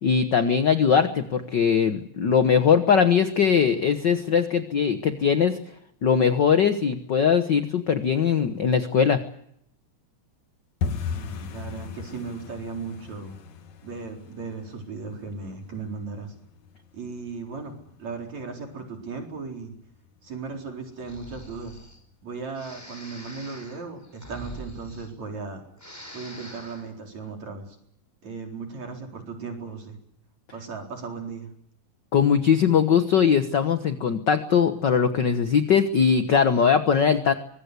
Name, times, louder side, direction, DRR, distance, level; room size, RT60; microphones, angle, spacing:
voice 1, 0.0-5.6 6.0-9.2 32.1-37.3, left 7 dB, 50° left, 9 dB, 1.4 m, -21 dB
sound 1, 10.8-21.5 21.8-22.5 22.7-23.0 23.3-23.7 24.0-24.1 24.6-25.1 25.5-25.6 26.1-26.2, left 6 dB, 70° left, 2.8 m, -38 dB
voice 2, 11.0-13.4 13.8-16.3 16.9-19.7 20.2-21.8 22.2-25.6 26.1-27.8 28.2-30.0 30.5-31.5, right 4 dB, 65° right, 2 dB, 5.5 m, -36 dB
Breathing, 21.0-22.0 22.5-25.5 25.7-26.9, equal, 5° left, 5.3 m, -43 dB
24.5 x 22.0 x 8.3 m, 0.72 s
omnidirectional pair, 3.4 m